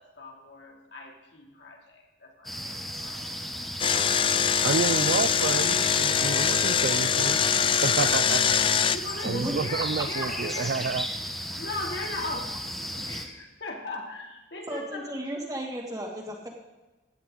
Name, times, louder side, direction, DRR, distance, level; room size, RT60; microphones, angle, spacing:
voice 1, 0.0-3.5 8.9-10.9 11.6-15.2, left 2 dB, 80° left, 0 dB, 2.8 m, -39 dB
sound 1, 2.4-13.3, equal, ahead, 1.1 m, -35 dB
Engine, 3.8-9.0, left 7 dB, 30° left, 0.4 m, -23 dB
voice 2, 4.6-7.5 7.8-8.4 9.2-11.1, right 5 dB, 65° right, 16 dB, 0.4 m, -29 dB
voice 3, 14.7-16.5, right 1 dB, 20° right, 0 dB, 2.2 m, -34 dB
16.0 x 10.5 x 3.9 m, 1.1 s
head